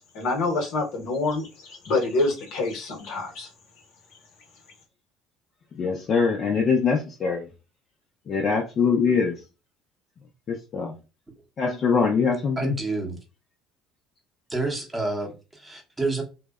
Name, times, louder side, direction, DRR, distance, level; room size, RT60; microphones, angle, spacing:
voice 1, 0.0-1.5 1.8-3.5, left 3 dB, 75° left, 0.8 m, -26 dB
voice 2, 5.8-7.4 8.3-9.3 10.5-10.9 11.6-12.8, left 5 dB, 45° left, 0.4 m, -23 dB
voice 3, 12.6-13.2 14.5-16.2, right 3 dB, 15° right, 0.7 m, -29 dB
2.6 x 2.0 x 2.2 m
cardioid pair, 110°, 0 cm